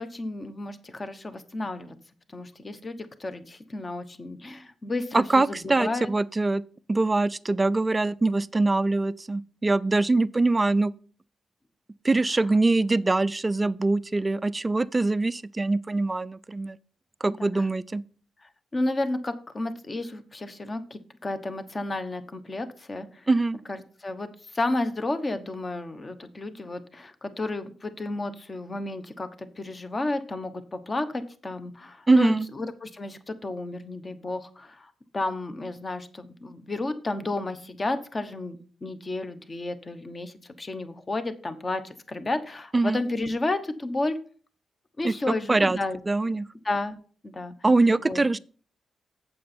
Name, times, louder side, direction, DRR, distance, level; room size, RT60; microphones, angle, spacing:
voice 1, 0.0-1.9 2.3-6.1 17.3-17.6 18.7-23.3 23.7-44.2 45.0-46.0 46.6-47.0 47.2-47.5 48.0-48.2, left 2 dB, 25° left, 1.0 m, -32 dB
voice 2, 5.1-6.6 6.9-10.9 12.0-16.8 17.2-18.0 23.3-23.6 32.1-32.5 42.7-43.0 45.0-45.1 45.5-45.8 46.1-46.5 47.6-48.4, right 2 dB, 20° right, 0.4 m, -23 dB
8.4 x 7.8 x 4.3 m
cardioid pair, 120°, 0 cm